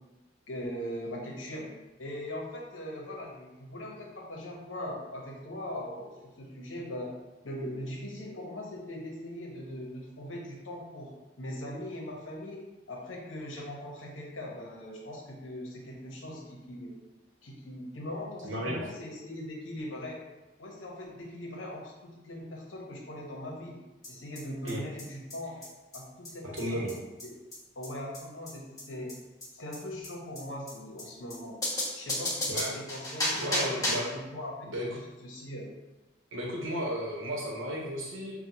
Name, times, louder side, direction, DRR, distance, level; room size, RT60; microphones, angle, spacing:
voice 1, 0.5-6.1 6.4-7.1 7.4-16.9 17.4-20.2 20.6-23.8 24.1-25.6 25.9-26.9 27.2-27.3 27.7-29.1 29.5-31.6 32.0-35.0 35.2-35.7, left 1 dB, 75° left, -2 dB, 1.0 m, -40 dB
voice 2, 18.4-18.8 24.6-24.8 26.5-27.0 32.5-32.7 33.3-34.2 34.7-35.0 36.3-38.4, equal, 85° right, -2 dB, 1.0 m, -34 dB
sound 1, 24.0-24.1 24.3-24.4 24.7-24.8 25.0-25.1 25.3-25.4 25.6-25.7 25.9-26.0 26.2-26.3 26.6-26.7 26.9-27.0 27.2-27.3 27.5-27.6 27.8-27.9 28.1-28.2 28.5-28.6 28.8-28.9 29.1-29.2 29.4-29.5 29.7-29.8 30.0-30.1 30.3-30.4 30.7-30.8 31.0-31.1 31.3-31.4 31.6-34.1, left 1 dB, 20° left, 1.3 m, -32 dB
5.9 x 2.3 x 2.8 m, 1.1 s
head